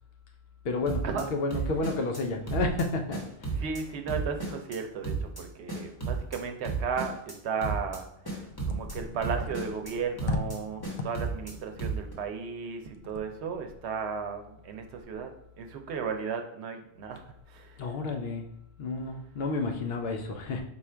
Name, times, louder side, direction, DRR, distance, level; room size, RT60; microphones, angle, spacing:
voice 1, 0.6-3.5 8.7-8.9 10.9-11.0 17.8-18.4 18.8-20.6, left 3 dB, 65° left, 4 dB, 0.8 m, -31 dB
sound 1, 0.9-1.2 1.5-2.2 2.5-2.8 3.1-3.8 4.1-4.8 5.0-5.4 5.7-6.4 6.6-7.3 7.6-8.0 8.2-8.9 9.2-9.9 10.2-10.6 10.8-11.5 11.8-12.1, right 4 dB, 20° left, 0.9 m, -33 dB
voice 2, 3.6-8.1 8.4-10.8 11.0-15.3 15.6-17.2 17.5-17.8, right 6 dB, 80° right, 6 dB, 0.9 m, -35 dB
4.2 x 2.4 x 4.4 m, 0.75 s
omnidirectional pair, 1.1 m